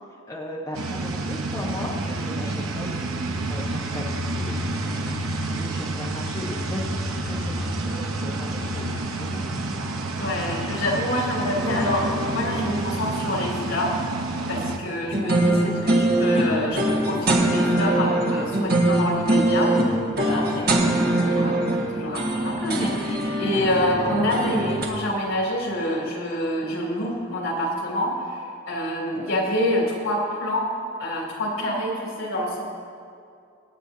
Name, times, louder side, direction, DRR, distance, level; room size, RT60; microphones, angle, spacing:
voice 1, 0.3-9.7, left 1 dB, 15° left, -4 dB, 1.1 m, -37 dB
sound 1, 0.7-14.8, right 2 dB, 90° right, 0.9 m, -29 dB
voice 2, 10.2-14.0 14.5-21.6 21.9-28.4 28.7-30.7 31.0-32.6, left 1 dB, 70° left, -2 dB, 3.0 m, -27 dB
sound 2, 11.6-13.9 15.1-24.9, right 1 dB, 45° right, 1.6 m, -23 dB
25.0 x 8.8 x 2.8 m, 2.3 s
head